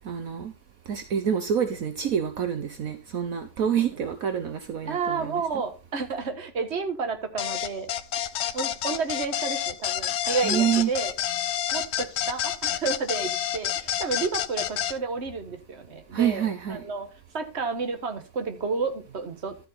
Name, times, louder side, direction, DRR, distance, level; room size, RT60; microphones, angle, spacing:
voice 1, 0.1-0.5 0.9-5.4 10.4-10.9 16.1-16.8, right 8 dB, 65° right, 7 dB, 1.4 m, -27 dB
voice 2, 4.9-7.9 8.5-11.1 11.7-16.4 16.7-17.1 17.3-19.6, right 4 dB, 45° right, 7 dB, 1.8 m, -31 dB
sound 1, 7.4-14.9, left 11 dB, 85° left, 1.3 m, -28 dB
13.0 x 7.9 x 4.2 m, 0.30 s
omnidirectional pair, 1.6 m